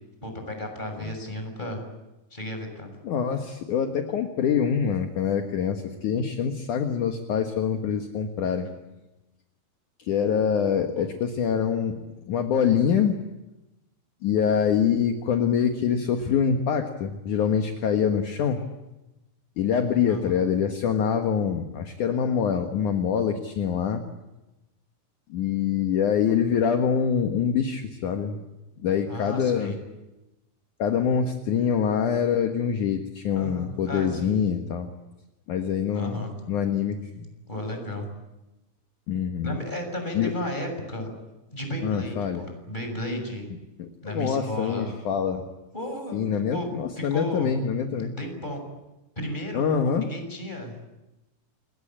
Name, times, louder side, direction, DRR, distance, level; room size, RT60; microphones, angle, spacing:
voice 1, 0.2-1.8 2.3-2.9 11.0-11.1 20.1-20.4 29.1-29.8 33.3-34.3 35.9-36.3 37.5-38.0 39.4-41.1 41.5-43.5 44.0-44.9 45.7-46.7 47.0-47.5 48.0-48.6 49.2-50.9, left 1 dB, 10° left, 4 dB, 6.5 m, -34 dB
voice 2, 3.0-8.7 10.0-12.0 12.3-13.2 14.2-18.6 19.6-24.0 25.3-28.4 28.8-29.7 30.8-34.9 35.5-36.2 36.5-37.3 39.1-39.6 40.1-40.3 41.8-42.4 43.8-45.5 46.1-48.1 49.5-50.1, left 7 dB, 60° left, 4 dB, 2.3 m, -25 dB
29.0 x 22.5 x 8.9 m, 1.0 s
omnidirectional pair, 5.3 m